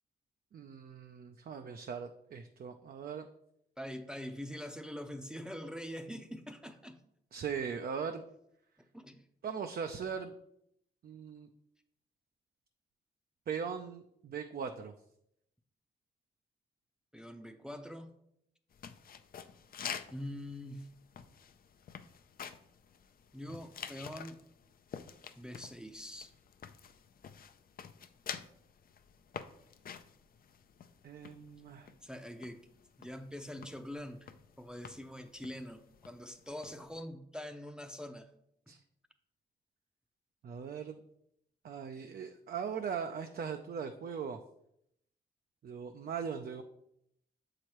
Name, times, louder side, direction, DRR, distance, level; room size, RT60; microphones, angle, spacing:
voice 1, 0.5-3.3 7.3-8.2 9.4-10.3 11.0-11.5 13.5-14.9 31.0-31.9 38.7-38.8 40.4-41.0 41.6-44.4 45.6-46.6, right 6 dB, 55° right, 6 dB, 0.5 m, -39 dB
voice 2, 3.8-7.0 8.9-9.2 17.1-18.1 20.1-20.9 23.3-24.4 25.4-26.3 32.0-32.7 33.0-34.3 34.6-38.3, equal, 5° right, 5 dB, 0.6 m, -44 dB
sound 1, 18.7-37.0, left 7 dB, 55° left, 0.5 m, -49 dB
7.0 x 4.8 x 3.0 m, 0.76 s
cardioid pair, 60°, 18 cm